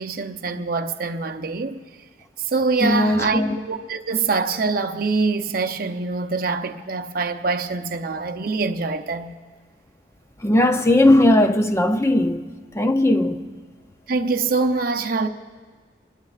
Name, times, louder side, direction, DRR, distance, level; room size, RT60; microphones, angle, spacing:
voice 1, 0.0-1.8 2.4-9.3 14.1-15.3, right 4 dB, 55° right, 0.7 m, -24 dB
voice 2, 2.8-3.6 10.4-12.5 12.7-13.4, left 1 dB, 15° left, 0.5 m, -18 dB
26.0 x 20.0 x 2.4 m
head